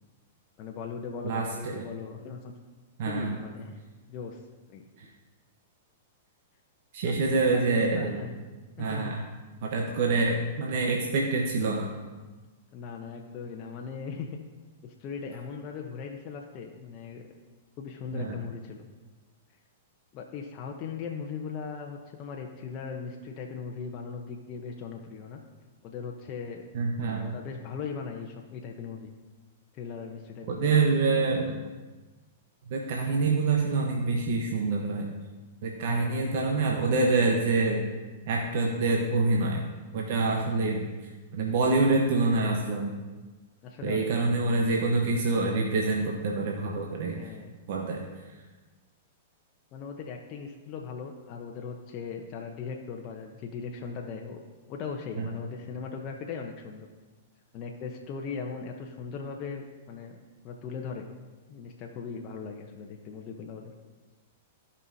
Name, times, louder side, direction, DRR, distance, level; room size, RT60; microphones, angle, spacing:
voice 1, 0.6-2.5 3.0-3.8 4.1-4.4 4.7-4.8 7.0-8.3 8.8-9.1 12.7-14.4 14.8-17.2 17.8-18.8 20.1-25.4 25.8-26.6 27.1-29.1 29.7-30.9 35.9-36.4 43.6-44.4 47.1-47.5 49.7-54.4 54.7-56.9 57.5-60.2 60.4-61.1 61.5-63.7, left 5 dB, 40° left, 1 dB, 0.9 m, -39 dB
voice 2, 1.2-1.8 3.0-3.4 5.0-5.1 6.9-8.2 8.8-9.2 9.6-11.9 18.1-18.4 26.7-27.3 30.5-31.6 32.7-35.1 35.6-37.9 38.3-39.6 39.9-40.9 41.3-42.9 43.8-47.3 47.7-48.0 55.2-55.3, right 3 dB, 60° right, 0 dB, 1.0 m, -26 dB
15.5 x 5.5 x 2.8 m, 1.3 s
hypercardioid pair, 120°, 0 cm